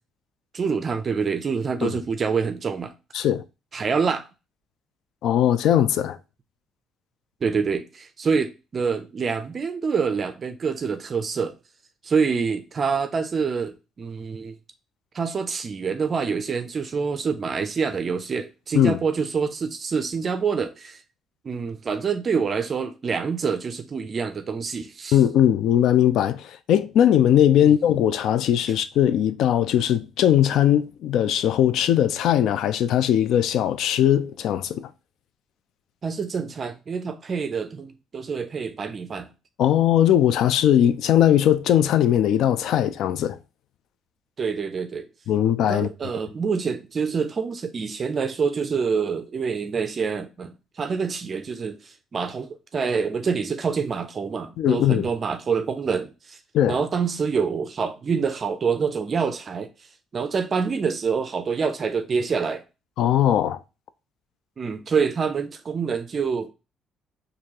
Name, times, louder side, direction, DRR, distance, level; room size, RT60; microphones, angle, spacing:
voice 1, 0.5-2.9 3.7-4.3 7.4-11.5 12.0-14.5 15.1-21.0 21.4-25.2 27.6-27.7 36.0-39.3 44.4-45.1 45.7-56.4 56.7-59.7 60.1-62.6 64.6-66.5, right 5 dB, 40° right, 0.4 m, -26 dB
voice 2, 5.2-6.2 18.7-19.0 25.1-34.9 39.6-43.4 45.3-45.9 54.6-55.1 56.5-56.8 63.0-63.6, left 10 dB, 75° left, 0.3 m, -20 dB
4.5 x 2.6 x 2.8 m
cardioid pair, 105°, 0 cm